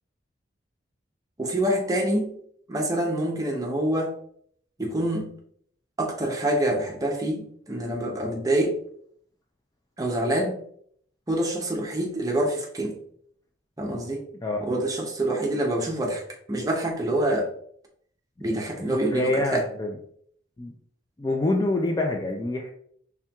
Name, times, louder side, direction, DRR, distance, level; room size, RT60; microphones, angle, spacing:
voice 1, 1.4-2.4 2.7-4.2 4.8-5.3 6.0-8.8 10.0-10.6 11.3-12.9 13.8-14.2 14.6-16.2 16.5-17.5 18.4-19.7, right 1 dB, 20° right, 1 dB, 0.6 m, -26 dB
voice 2, 18.9-19.9 20.6-20.7 21.2-22.7, left 2 dB, 20° left, 1 dB, 0.3 m, -26 dB
4.3 x 3.5 x 2.3 m, 0.64 s
head